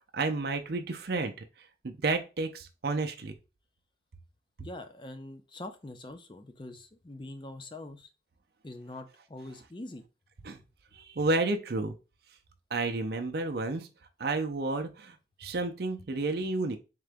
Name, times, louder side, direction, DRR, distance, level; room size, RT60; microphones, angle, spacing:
voice 1, 0.1-1.3 1.8-3.3 10.4-10.6 10.9-12.0 12.7-13.9 14.2-16.8, right 3 dB, 60° right, 5 dB, 0.5 m, -31 dB
voice 2, 4.6-8.1 8.6-10.0, left 1 dB, 25° left, 7 dB, 0.5 m, -44 dB
3.8 x 3.7 x 3.4 m, 0.30 s
head